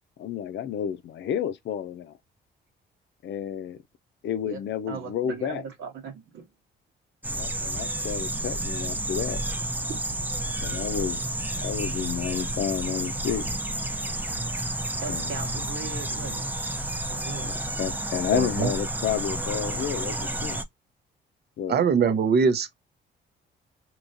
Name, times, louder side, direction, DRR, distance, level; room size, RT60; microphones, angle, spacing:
voice 1, 0.2-2.2 3.2-3.8 4.2-5.6 7.2-9.4 10.6-11.3 11.6-13.5 15.0-15.5 17.4-20.6 21.6-21.9, left 9 dB, 65° left, 0.6 m, -31 dB
voice 2, 4.9-6.5 9.9-10.0 15.0-16.5 17.1-17.5 19.1-19.2, right 5 dB, 85° right, 1.5 m, -38 dB
sound 1, 7.2-20.6, right 1 dB, 10° right, 0.6 m, -31 dB
voice 3, 18.3-18.7 21.7-22.7, right 6 dB, 55° right, 0.8 m, -22 dB
4.7 x 3.0 x 2.6 m
cardioid pair, 90°, 20 cm